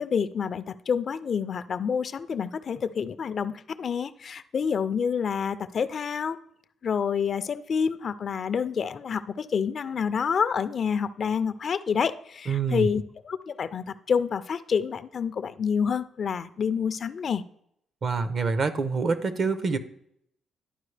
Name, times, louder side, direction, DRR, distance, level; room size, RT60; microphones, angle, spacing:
voice 1, 0.0-6.4 6.8-17.4, left 6 dB, 50° left, 13 dB, 0.4 m, -28 dB
voice 2, 12.5-12.9 18.0-19.8, right 4 dB, 50° right, 12 dB, 0.7 m, -26 dB
11.5 x 4.7 x 3.3 m, 0.71 s
cardioid pair, 90°, 0 cm